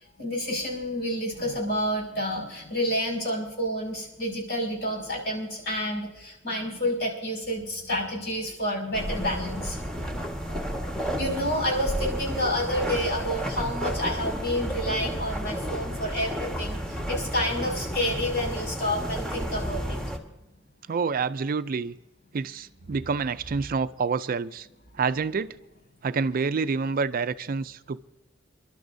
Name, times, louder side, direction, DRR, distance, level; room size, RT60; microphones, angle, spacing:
voice 1, 0.2-10.0 10.4-20.0, equal, 60° left, -1 dB, 6.0 m, -29 dB
sound 1, 8.9-20.2, equal, 5° left, 1.5 m, -32 dB
voice 2, 20.9-21.9 22.3-24.7 24.9-25.6 26.0-28.0, right 5 dB, 50° right, 13 dB, 0.4 m, -28 dB
28.5 x 12.0 x 2.7 m, 0.98 s
head